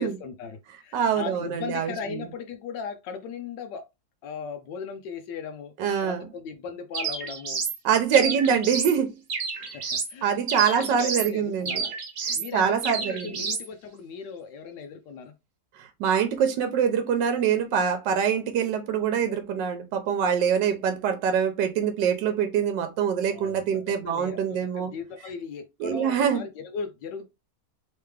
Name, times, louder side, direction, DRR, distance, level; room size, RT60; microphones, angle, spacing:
voice 1, 0.0-3.9 4.2-5.7 6.0-7.6 8.1-8.6 9.7-10.3 10.5-12.0 12.3-15.3 23.3-27.3, left 6 dB, 85° left, 1.3 m, -38 dB
voice 2, 0.9-1.9 5.8-6.2 7.8-9.2 10.2-11.8 12.5-13.3 15.8-24.9 25.8-26.4, right 7 dB, 80° right, 1.4 m, -24 dB
sound 1, 6.9-7.8 8.1-9.0 9.3-10.1 10.5-11.3 11.7-12.5 12.8-13.7, right 5 dB, 55° right, 1.2 m, -30 dB
3.6 x 3.4 x 3.2 m
omnidirectional pair, 1.9 m